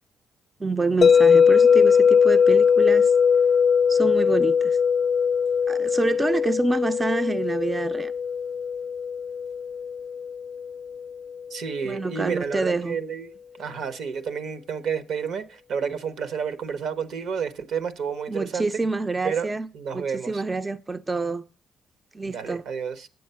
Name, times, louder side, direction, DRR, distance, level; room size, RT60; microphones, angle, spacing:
voice 1, 0.6-3.1 3.9-4.8 5.7-8.1 11.8-13.0 18.3-19.7 19.9-21.4 22.1-22.6, right 3 dB, 20° right, 0.5 m, -27 dB
sound 1, 1.0-11.1, left 6 dB, 35° left, 0.4 m, -20 dB
voice 2, 11.5-13.3 13.6-15.4 15.7-18.7 19.2-19.5 19.7-20.4 22.2-23.1, right 6 dB, 70° right, 1.0 m, -30 dB
9.5 x 7.5 x 5.5 m
cardioid pair, 90°, 0 cm